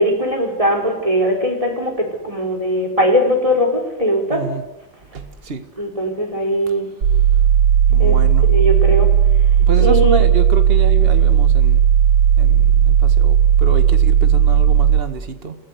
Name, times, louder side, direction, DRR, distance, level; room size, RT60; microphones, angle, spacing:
voice 1, 0.0-4.4 5.8-6.9 8.0-8.2 8.5-9.1 9.8-10.2, equal, 15° right, 2 dB, 4.5 m, -19 dB
voice 2, 4.3-4.6 5.1-5.6 7.9-8.5 9.3-11.8 12.4-15.6, right 5 dB, 30° right, 8 dB, 1.8 m, -27 dB
sound 1, 7.0-15.0, right 9 dB, 90° right, 4.4 m, -14 dB
30.0 x 16.5 x 8.2 m, 0.95 s
omnidirectional pair, 2.1 m